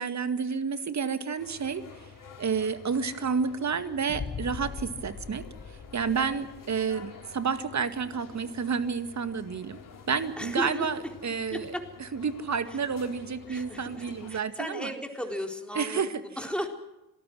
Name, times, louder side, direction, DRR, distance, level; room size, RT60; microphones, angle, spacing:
voice 1, 0.0-1.8 2.4-5.4 5.9-9.8 10.1-11.7 12.1-14.9 15.7-16.2, right 6 dB, 35° right, 11 dB, 2.0 m, -30 dB
sound 1, 1.4-14.4, left 6 dB, 40° left, 4.1 m, -50 dB
sound 2, 4.1-7.1, left 5 dB, 25° left, 1.5 m, -40 dB
voice 2, 10.4-10.9 11.5-11.9 12.7-12.8 13.5-16.0 16.4-16.7, equal, ahead, 3 dB, 4.2 m, -35 dB
26.5 x 18.5 x 6.3 m, 0.95 s
figure-of-eight pair, 45°, 48 cm